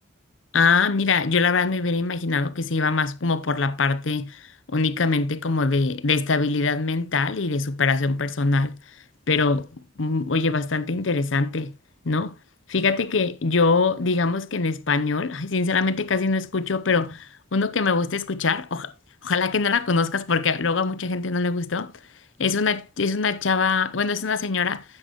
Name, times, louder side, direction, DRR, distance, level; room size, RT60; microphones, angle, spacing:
voice 1, 0.5-8.8 9.3-11.7 12.0-12.3 12.7-18.9 19.2-21.9 22.4-24.8, left 4 dB, 85° left, 0.8 m, -23 dB
10.5 x 8.8 x 3.0 m
head